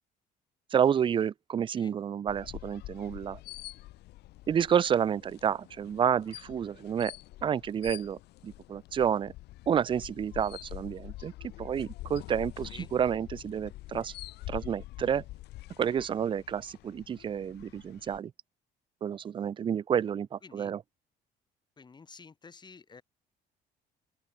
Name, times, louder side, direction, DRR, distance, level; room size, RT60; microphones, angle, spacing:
voice 1, 0.7-3.4 4.5-7.1 7.4-9.3 9.7-11.3 11.6-14.1 14.5-15.2 15.8-18.3 19.0-20.8, right 8 dB, 30° right, 0.4 m, -29 dB
sound 1, 2.3-18.2, left 17 dB, 80° left, 2.1 m, -46 dB
voice 2, 21.8-23.0, left 5 dB, 25° left, 2.1 m, -51 dB
open air
cardioid pair, 110°, 17 cm